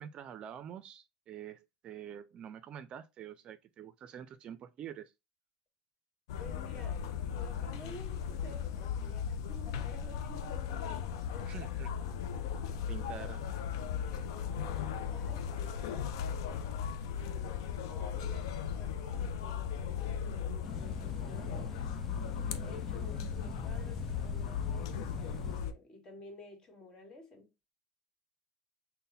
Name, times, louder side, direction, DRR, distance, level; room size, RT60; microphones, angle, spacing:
voice 1, 0.0-5.1 11.5-11.9 12.9-13.4, right 9 dB, 45° right, 0.4 m, -46 dB
sound 1, 6.3-25.7, left 7 dB, 85° left, 0.4 m, -37 dB
voice 2, 6.4-7.0 7.3-11.0 11.3-11.6 13.9-16.1 17.0-21.8 22.6-27.7, left 2 dB, 30° left, 1.5 m, -52 dB
sound 2, 20.6-25.6, left 4 dB, 10° left, 0.5 m, -44 dB
3.8 x 2.1 x 4.0 m
supercardioid pair, 105°, 2 cm